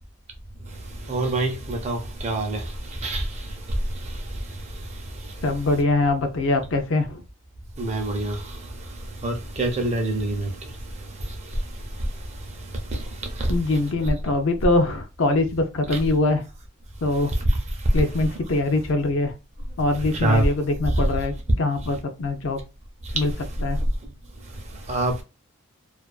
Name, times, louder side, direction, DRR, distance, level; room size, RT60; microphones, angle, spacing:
voice 1, 0.7-5.4 7.8-13.5 17.3-18.0 20.1-20.5 20.9-21.1 23.0-23.2 24.0-24.1 24.5-25.2, right 1 dB, 30° right, 0.5 m, -27 dB
voice 2, 5.4-7.2 13.5-16.4 17.0-17.3 17.9-19.3 19.8-22.6 23.1-23.3 23.6-23.8, left 2 dB, 60° left, 0.5 m, -23 dB
2.3 x 2.2 x 2.4 m
head